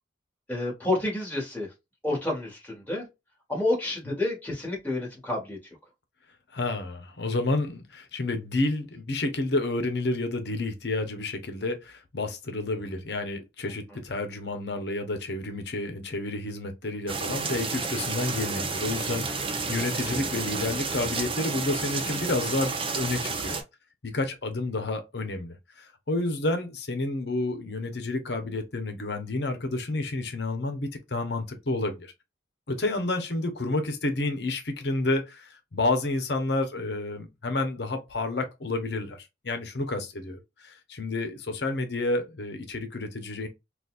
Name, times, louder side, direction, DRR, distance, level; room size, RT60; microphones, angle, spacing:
voice 1, 0.5-1.7 2.0-3.0 3.5-5.6, left 2 dB, 10° left, 1.6 m, -29 dB
voice 2, 6.5-23.6 24.0-32.1 32.7-43.5, left 2 dB, 65° left, 0.9 m, -30 dB
sound 1, 17.1-23.6, right 4 dB, 30° right, 0.6 m, -31 dB
4.0 x 2.4 x 2.4 m
head